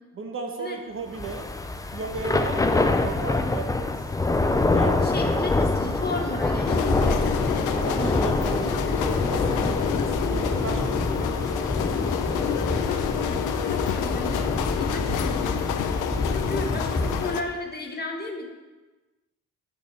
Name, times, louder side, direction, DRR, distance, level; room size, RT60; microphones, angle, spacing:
voice 1, 0.1-1.5 1.9-3.9 4.7-5.5 7.7-11.5, right 4 dB, 45° right, 3 dB, 1.1 m, -36 dB
Thunder / Rain, 1.1-17.4, left 2 dB, 10° left, 0.5 m, -26 dB
voice 2, 5.0-9.1 12.8-15.8 16.3-18.5, left 3 dB, 35° left, 2 dB, 1.3 m, -34 dB
sound 1, 6.7-17.4, left 9 dB, 85° left, 0.6 m, -29 dB
8.2 x 5.4 x 4.2 m, 1.2 s
cardioid pair, 90°, 30 cm